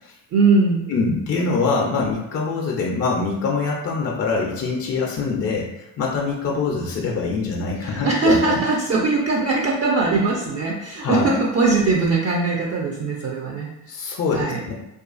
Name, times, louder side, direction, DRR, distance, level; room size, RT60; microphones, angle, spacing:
voice 1, 0.3-0.9 7.8-13.7 14.3-14.6, right 3 dB, 35° right, -2 dB, 0.4 m, -20 dB
voice 2, 0.9-8.6 11.0-11.4 13.9-14.7, left 4 dB, 35° left, -2 dB, 0.4 m, -24 dB
2.4 x 2.3 x 2.4 m, 0.91 s
supercardioid pair, 75°, 45 cm